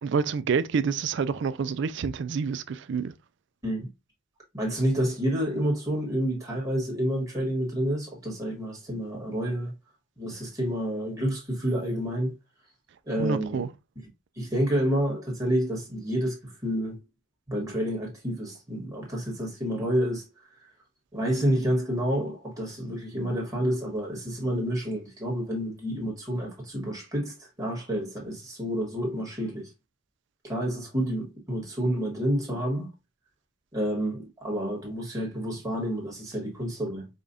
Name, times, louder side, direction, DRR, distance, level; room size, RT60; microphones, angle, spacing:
voice 1, 0.0-3.1 13.2-13.7, right 5 dB, 60° right, 0.4 m, -28 dB
voice 2, 4.5-9.7 10.2-12.3 13.1-13.6 14.4-17.0 17.5-20.2 21.1-29.7 30.4-32.9 33.7-37.1, equal, 15° right, 1.5 m, -29 dB
5.0 x 2.4 x 2.6 m
head